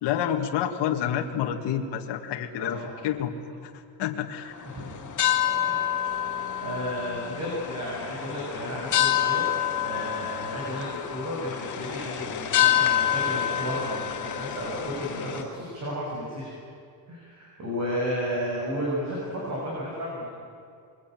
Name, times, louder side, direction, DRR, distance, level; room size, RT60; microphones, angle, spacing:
voice 1, 0.0-3.3 3.6-4.5, left 9 dB, 75° left, 2 dB, 2.1 m, -29 dB
voice 2, 2.6-3.0 4.7-5.1 5.6-16.6 17.1-20.3, equal, 40° right, -3 dB, 6.8 m, -33 dB
sound 1, 4.5-15.4, left 10 dB, 45° left, 2.2 m, -28 dB
27.0 x 23.0 x 9.2 m, 2.4 s
cardioid pair, 170°, 43 cm